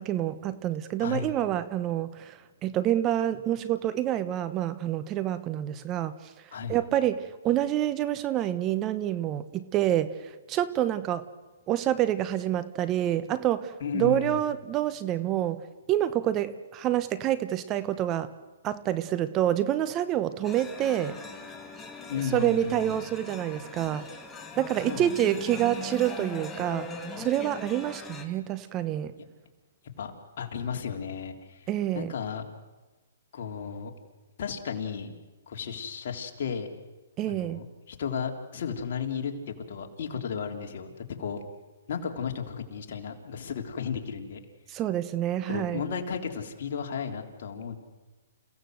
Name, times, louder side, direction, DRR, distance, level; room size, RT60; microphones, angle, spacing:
voice 1, 0.0-6.3 6.7-11.2 11.7-15.6 15.9-18.3 18.6-21.2 22.3-24.1 24.6-29.1 31.7-32.1 37.2-37.6 44.7-45.8, right 12 dB, 25° right, 13 dB, 1.0 m, -27 dB
voice 2, 1.0-1.3 6.5-6.8 13.8-14.4 22.1-23.0 24.8-25.1 25.5-26.0 29.8-31.7 31.9-32.4 33.3-33.9 34.4-35.2 35.5-36.7 37.3-41.4 41.9-44.4 45.5-47.7, left 6 dB, 55° left, 3 dB, 3.4 m, -34 dB
sound 1, 20.4-28.2, left 3 dB, 10° left, 2.1 m, -41 dB
29.0 x 16.5 x 7.9 m, 1.2 s
hypercardioid pair, 145°, 0 cm